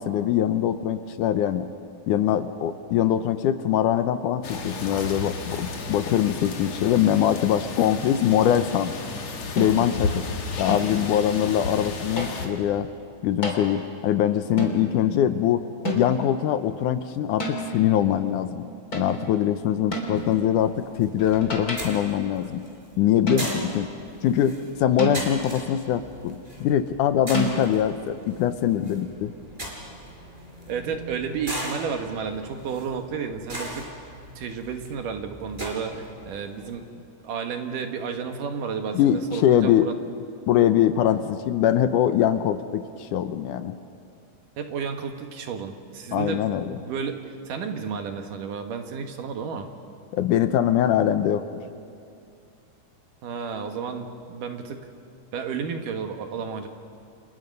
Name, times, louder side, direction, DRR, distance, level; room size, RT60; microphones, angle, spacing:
voice 1, 0.0-1.7 2.1-8.9 9.5-10.3 10.6-12.9 13.2-15.6 15.9-18.7 18.9-22.6 23.0-23.9 24.2-29.3 38.9-39.9 40.5-43.8 46.1-46.8 50.1-51.5, left 10 dB, 75° left, 10 dB, 2.2 m, -23 dB
sound 1, 4.4-12.5, left 3 dB, 55° left, 2.9 m, -33 dB
sound 2, 9.6-10.0 10.7-11.1 12.2-12.5 13.4-13.7 14.6-14.9 15.8-16.3 17.4-17.8 18.9-19.3 19.9-20.3 21.2-22.1 23.3-23.8 25.0-25.5 27.3-27.6, right 1 dB, 25° left, 3.4 m, -30 dB
sound 3, 20.1-36.9, right 1 dB, 15° right, 4.6 m, -39 dB
voice 2, 30.7-34.1 34.4-36.8 37.2-40.0 44.6-47.2 47.5-49.7 53.2-54.9 55.3-56.7, right 6 dB, 75° right, 5 dB, 3.1 m, -32 dB
29.0 x 28.5 x 5.4 m, 2.5 s
omnidirectional pair, 3.9 m